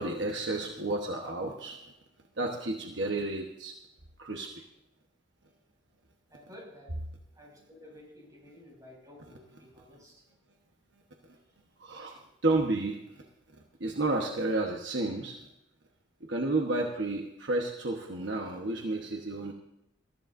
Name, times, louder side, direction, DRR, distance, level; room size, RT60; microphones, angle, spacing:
voice 1, 0.0-1.8 2.4-3.7 4.2-4.6 11.8-13.2 13.8-15.4 16.3-19.5, right 2 dB, 65° right, 1 dB, 1.2 m, -31 dB
voice 2, 6.3-7.0 7.3-10.2, left 1 dB, 20° right, -3 dB, 6.1 m, -52 dB
20.5 x 14.0 x 2.6 m, 0.81 s
head